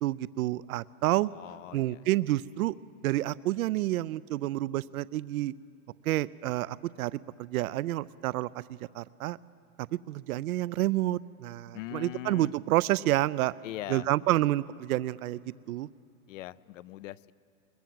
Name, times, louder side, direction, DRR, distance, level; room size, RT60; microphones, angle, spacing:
voice 1, 0.0-1.3 1.7-2.7 3.0-5.5 6.0-9.4 10.1-13.5 13.9-15.4 15.7-15.9, right 16 dB, 80° right, 18 dB, 0.5 m, -29 dB
voice 2, 1.1-2.0 11.7-12.6 13.6-14.1 16.3-17.3, left 15 dB, 65° left, 19 dB, 0.6 m, -41 dB
22.0 x 21.0 x 7.6 m, 2.7 s
hypercardioid pair, 145°, 42 cm